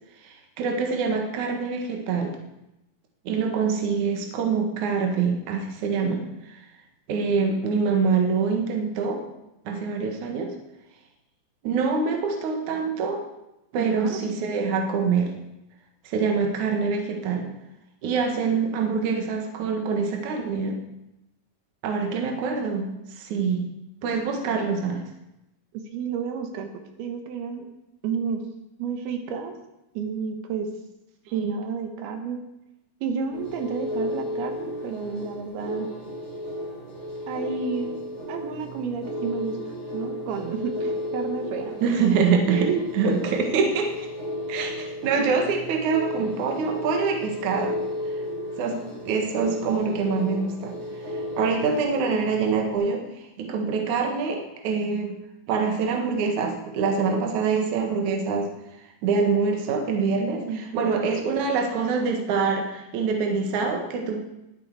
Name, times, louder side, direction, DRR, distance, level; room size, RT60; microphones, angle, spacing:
voice 1, 0.2-2.3 3.3-6.2 7.1-9.2 9.7-10.5 11.6-13.2 13.7-15.3 16.0-17.5 18.0-20.8 21.8-22.9 23.2-23.7 24.0-25.0 31.4-31.5 41.8-42.7 42.9-44.1 44.5-47.8 48.6-48.8 49.0-50.7 51.4-53.0 53.4-55.1 55.5-58.5 59.0-64.2, right 5 dB, 60° right, 3 dB, 2.7 m, -25 dB
voice 2, 13.7-14.2 25.7-26.7 27.0-27.7 28.0-28.4 28.8-29.5 29.9-30.7 31.3-32.4 33.0-35.9 37.3-38.0 38.3-39.6 39.9-41.8 42.5-42.9 60.5-60.9, right 6 dB, 85° right, 5 dB, 3.2 m, -30 dB
sound 1, 33.3-52.7, left 1 dB, 25° left, 6.7 m, -34 dB
20.0 x 8.6 x 4.8 m, 0.92 s
omnidirectional pair, 4.4 m